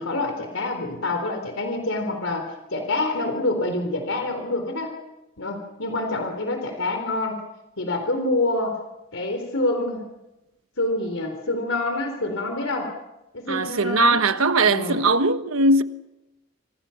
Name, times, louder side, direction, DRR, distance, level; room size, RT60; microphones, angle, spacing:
voice 1, 0.0-4.9 5.4-7.4 7.8-8.8 9.1-10.1 10.8-12.9 13.3-14.2 14.7-15.0, left 2 dB, 75° left, 3.8 m, -26 dB
voice 2, 13.5-15.8, right 2 dB, 90° right, 1.3 m, -20 dB
27.5 x 26.5 x 5.9 m
head